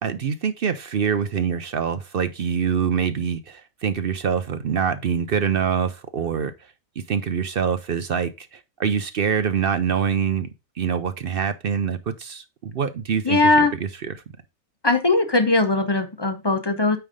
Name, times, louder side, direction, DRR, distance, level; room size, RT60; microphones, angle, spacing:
voice 1, 0.0-6.5 7.1-10.5 10.8-13.6 14.0-14.1, right 7 dB, 55° right, 0.7 m, -25 dB
voice 2, 13.2-13.7 14.8-17.0, left 3 dB, 20° left, 0.8 m, -19 dB
9.0 x 3.4 x 5.0 m
omnidirectional pair, 1.4 m